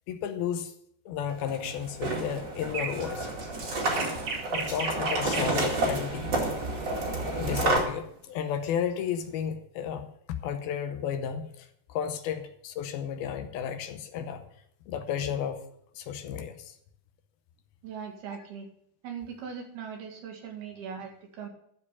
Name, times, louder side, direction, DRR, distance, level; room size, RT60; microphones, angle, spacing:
voice 1, 0.1-0.7 1.1-3.3 4.5-6.3 7.3-10.1 10.4-14.4 14.9-15.6 16.0-16.7, left 8 dB, 75° left, 8 dB, 2.6 m, -33 dB
sound 1, 1.3-7.8, right 2 dB, 35° right, 2.2 m, -30 dB
sound 2, 2.6-5.6 7.7-7.9, right 5 dB, 50° right, 2.4 m, -35 dB
voice 2, 17.8-18.7 19.0-21.5, right 7 dB, 75° right, 3 dB, 3.8 m, -40 dB
13.5 x 4.8 x 8.3 m, 0.69 s
omnidirectional pair, 4.6 m